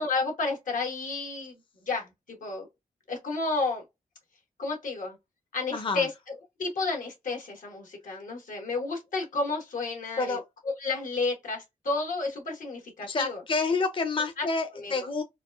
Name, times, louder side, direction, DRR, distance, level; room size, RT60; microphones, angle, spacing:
voice 1, 0.0-1.6 1.9-2.7 3.1-3.8 4.6-5.2 5.5-6.1 6.6-10.4 10.8-13.4 14.4-14.5 14.7-15.1, left 3 dB, 85° left, 1.4 m, -31 dB
voice 2, 5.7-6.0 10.2-10.4 13.1-15.2, left 3 dB, 40° left, 0.6 m, -28 dB
4.0 x 2.4 x 2.3 m
cardioid pair, 75°, 13 cm